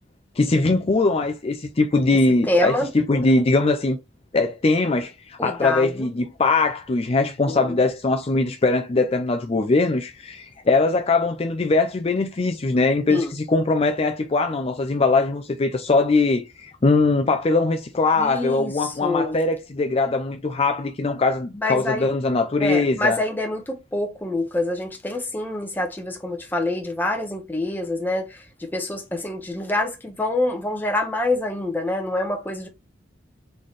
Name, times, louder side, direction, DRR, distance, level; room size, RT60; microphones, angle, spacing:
voice 1, 0.4-4.0 4.3-23.2, left 3 dB, 35° left, 0.5 m, -21 dB
voice 2, 2.5-2.9 5.4-6.1 7.5-7.8 13.1-13.3 18.2-19.4 21.5-22.1 22.6-32.7, left 2 dB, 10° left, 1.0 m, -26 dB
4.0 x 3.8 x 3.2 m
head